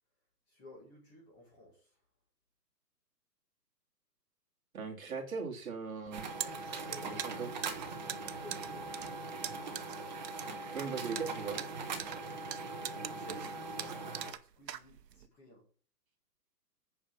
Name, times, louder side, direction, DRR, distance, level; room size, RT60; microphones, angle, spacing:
voice 1, 0.5-1.8 6.7-7.3 8.4-8.9 12.9-14.3 14.6-15.6, equal, 15° left, 1.9 m, -53 dB
voice 2, 4.7-6.3 7.0-7.6 10.7-11.6, right 5 dB, 55° right, 2.5 m, -39 dB
sound 1, 6.1-14.3, right 3 dB, 25° right, 1.1 m, -41 dB
sound 2, 6.1-15.3, right 9 dB, 80° right, 0.9 m, -43 dB
8.6 x 5.4 x 7.1 m
hypercardioid pair, 175°, 49 cm